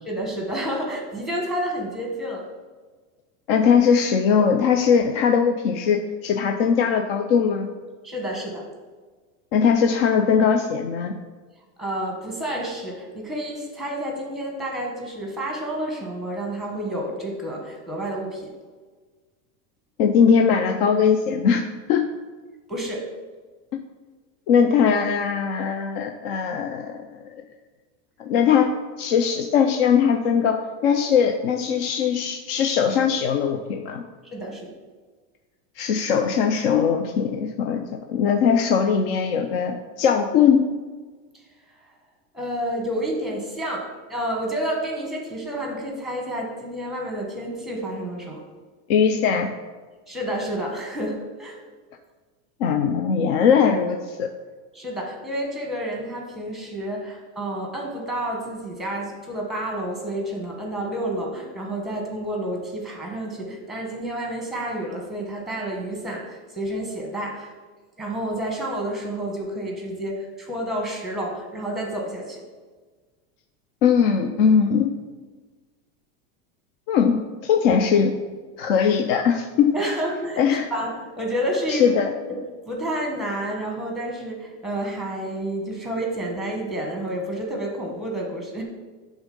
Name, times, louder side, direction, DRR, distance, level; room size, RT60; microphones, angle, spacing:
voice 1, 0.0-2.5 8.0-8.7 11.8-18.5 22.7-23.1 34.2-34.7 41.3-41.4 42.3-48.4 50.1-51.6 54.7-67.5 68.0-72.4 79.7-82.0 82.3-88.6, right 1 dB, ahead, 0 dB, 1.1 m, -30 dB
voice 2, 3.5-7.7 9.5-11.1 20.0-22.1 24.5-27.3 28.2-34.0 35.8-40.7 48.9-49.5 52.6-54.3 73.8-74.9 76.9-78.1 78.6-79.7 80.4-80.7 81.7-82.1, left 7 dB, 50° left, 4 dB, 0.6 m, -20 dB
11.0 x 3.6 x 5.3 m, 1.4 s
supercardioid pair, 170°, 36 cm